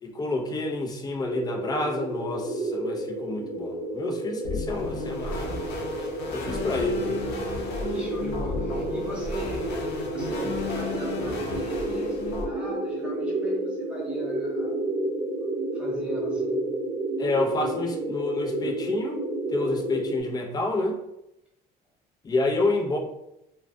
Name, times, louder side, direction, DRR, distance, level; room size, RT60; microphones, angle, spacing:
voice 1, 0.0-5.6 6.3-7.2 17.2-19.2 19.5-21.0 22.2-23.0, left 2 dB, 25° left, 2 dB, 0.4 m, -29 dB
sound 1, 1.2-20.2, right 1 dB, 30° right, 0.5 m, -31 dB
sound 2, 4.4-12.5, left 4 dB, 80° left, 0.6 m, -34 dB
voice 2, 6.4-6.9 7.8-15.1 15.7-16.8, right 2 dB, 5° right, -5 dB, 0.8 m, -40 dB
2.3 x 2.1 x 2.5 m, 0.83 s
cardioid pair, 110°, 17 cm